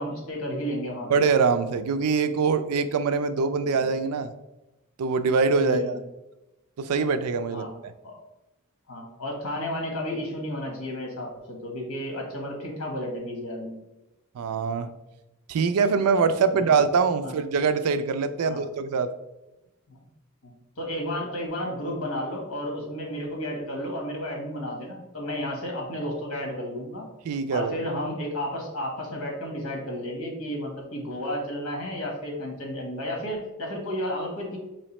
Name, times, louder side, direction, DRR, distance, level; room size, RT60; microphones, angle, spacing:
voice 1, 0.0-1.2 5.6-6.0 7.5-7.7 8.0-8.2 8.9-13.8 16.5-16.7 17.2-17.3 18.4-18.6 19.9-20.0 20.4-27.1 27.5-34.6, equal, 80° left, 0 dB, 1.2 m, -32 dB
voice 2, 1.1-4.3 5.0-6.0 6.8-7.7 14.4-14.9 15.5-19.1 27.3-27.7, right 5 dB, 85° right, 11 dB, 0.4 m, -23 dB
4.8 x 3.1 x 3.0 m, 1.0 s
head